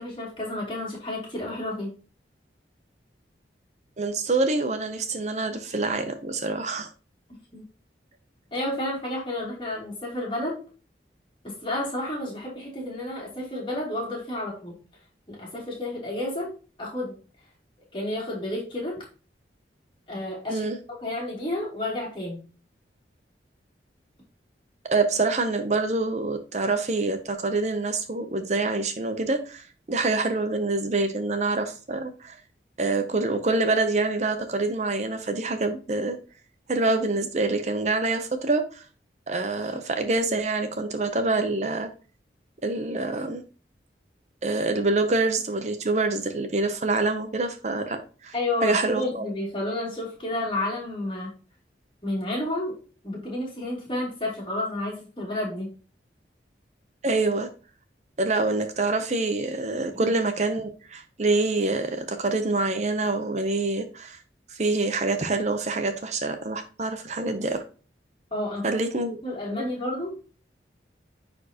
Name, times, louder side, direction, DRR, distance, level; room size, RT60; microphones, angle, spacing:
voice 1, 0.0-1.9 7.5-7.6 8.5-10.6 11.4-14.7 15.3-16.5 16.8-17.2 17.9-19.0 20.1-22.4 48.3-51.3 52.0-52.7 53.0-55.7 60.0-60.1 68.3-68.8 69.2-70.2, left 1 dB, 30° left, -4 dB, 2.9 m, -31 dB
voice 2, 4.0-6.9 20.5-20.8 24.9-32.4 32.8-36.2 36.7-38.8 39.3-41.9 42.6-43.4 44.4-48.3 48.6-49.3 57.0-57.5 58.2-64.2 64.5-67.6 68.6-69.2 69.6-69.7, right 3 dB, 40° right, 8 dB, 0.7 m, -26 dB
9.8 x 4.3 x 2.9 m, 0.37 s
head